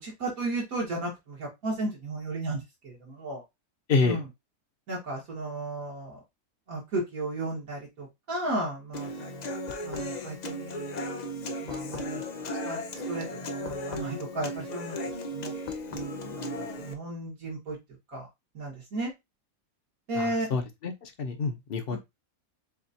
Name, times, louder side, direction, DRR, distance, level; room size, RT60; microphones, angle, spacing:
voice 1, 0.0-3.4 4.0-4.3 4.9-6.2 6.7-9.5 9.8-12.2 12.6-15.0 15.3-15.5 15.9-17.8 18.1-18.3 18.5-19.1 20.1-20.5 21.9-22.0, right 2 dB, 75° right, 2.1 m, -34 dB
voice 2, 3.9-4.2 20.2-22.0, left 4 dB, 45° left, 0.9 m, -28 dB
Human voice / Acoustic guitar, 8.9-16.9, left 1 dB, 90° left, 0.3 m, -36 dB
7.1 x 2.4 x 2.7 m
omnidirectional pair, 1.5 m